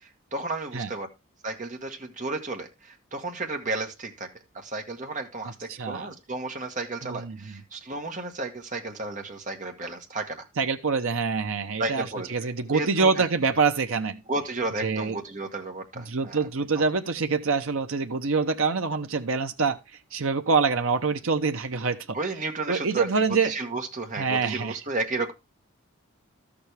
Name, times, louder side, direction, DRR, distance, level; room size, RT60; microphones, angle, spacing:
voice 1, 0.3-1.1 1.4-4.3 4.5-10.5 11.8-12.3 12.7-13.3 14.3-16.5 16.7-16.8 22.1-25.3, right 2 dB, 35° right, 1.5 m, -33 dB
voice 2, 5.7-6.1 7.0-7.4 10.6-14.2 14.8-15.2 16.0-19.8 20.1-22.2 22.7-23.5 24.2-24.8, right 4 dB, 65° right, 0.8 m, -25 dB
13.0 x 6.9 x 3.4 m
head